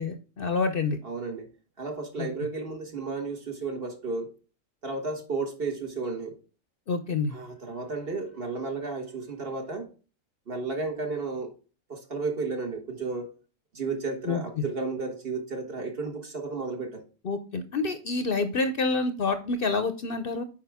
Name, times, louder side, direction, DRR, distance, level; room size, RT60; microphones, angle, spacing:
voice 1, 0.0-1.0 2.2-2.3 6.9-7.4 14.2-14.6 17.2-20.4, left 4 dB, 55° left, 0.8 m, -28 dB
voice 2, 1.0-1.5 1.8-4.3 4.8-6.4 7.3-9.9 10.5-11.5 11.9-13.3 13.7-17.0, right 3 dB, 50° right, 1.7 m, -33 dB
8.4 x 5.0 x 3.5 m
omnidirectional pair, 1.3 m